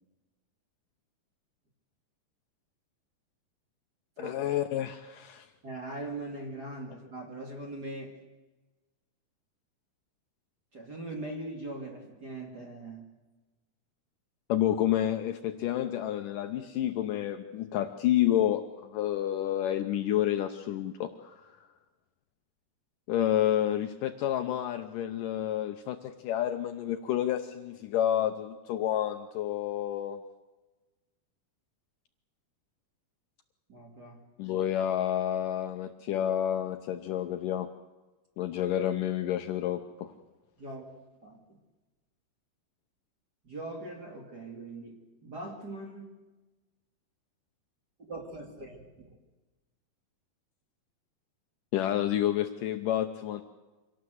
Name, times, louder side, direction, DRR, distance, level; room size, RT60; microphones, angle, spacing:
voice 1, 4.2-5.5 14.5-21.6 23.1-30.2 34.4-37.7 38.4-40.1 51.7-53.4, left 11 dB, 75° left, 7 dB, 2.1 m, -29 dB
voice 2, 5.6-8.2 10.7-13.1 33.7-34.2 40.6-40.9 41.2-41.6 43.4-46.1 48.0-49.0, right 2 dB, 30° right, 2 dB, 2.4 m, -41 dB
25.5 x 18.0 x 7.9 m, 1.2 s
omnidirectional pair, 4.5 m